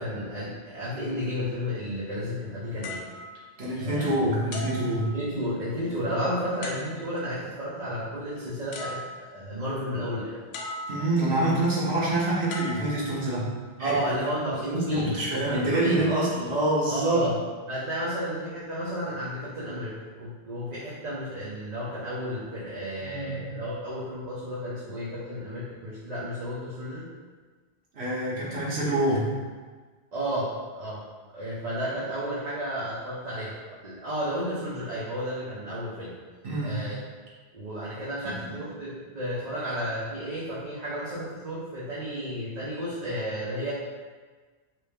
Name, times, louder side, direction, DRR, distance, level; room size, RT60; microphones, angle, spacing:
voice 1, 0.0-3.0 3.7-4.3 5.0-9.0 9.3-10.3 13.8-16.1 16.9-17.4 17.7-27.1 30.1-31.0 31.3-33.6 33.8-36.2 36.6-37.0 37.5-43.7, equal, 45° right, -10 dB, 0.8 m, -32 dB
sound 1, 2.8-4.0 4.5-5.7 6.6-7.3 8.4-8.5 8.7-9.5 10.5-11.3 12.5-13.6 14.3-14.6, left 2 dB, 85° left, 0.8 m, -39 dB
voice 2, 3.6-5.1 10.9-13.5 13.8-13.9 14.7-17.2 23.0-23.5 27.9-29.3 36.4-36.9 38.2-38.5, right 1 dB, 80° right, -6 dB, 1.2 m, -26 dB
3.2 x 2.7 x 3.4 m, 1.4 s
omnidirectional pair, 1.1 m